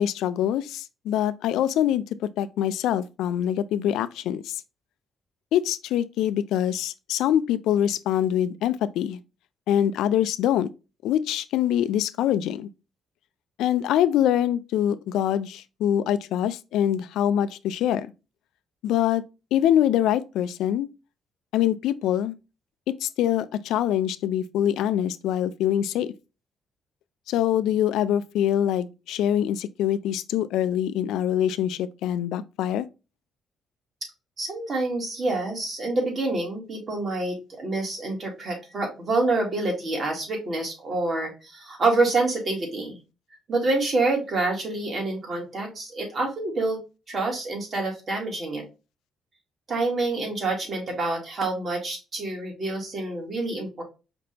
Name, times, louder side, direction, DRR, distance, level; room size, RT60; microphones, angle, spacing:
voice 1, 0.0-4.6 5.5-9.2 9.7-10.7 11.0-12.7 13.6-18.1 18.8-19.2 19.5-20.9 21.5-22.4 22.9-26.1 27.3-32.9, left 10 dB, 90° left, 0.3 m, -24 dB
voice 2, 34.4-43.0 43.5-46.8 47.1-48.6 49.7-53.8, right 2 dB, 45° right, 2.2 m, -27 dB
5.0 x 2.8 x 3.3 m
cardioid pair, 90°, 0 cm